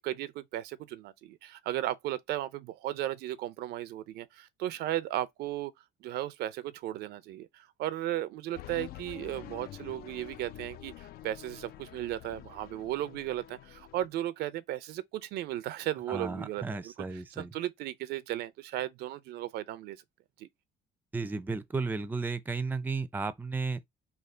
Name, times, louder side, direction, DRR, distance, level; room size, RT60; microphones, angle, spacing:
voice 1, 0.0-5.7 6.0-20.0 20.4-20.5, right 13 dB, 75° right, 0.5 m, -35 dB
sound 1, 8.5-14.1, left 12 dB, 65° left, 0.4 m, -47 dB
voice 2, 16.1-17.5 21.1-23.8, right 4 dB, 10° right, 0.4 m, -34 dB
3.3 x 2.3 x 3.7 m
cardioid pair, 110°, 17 cm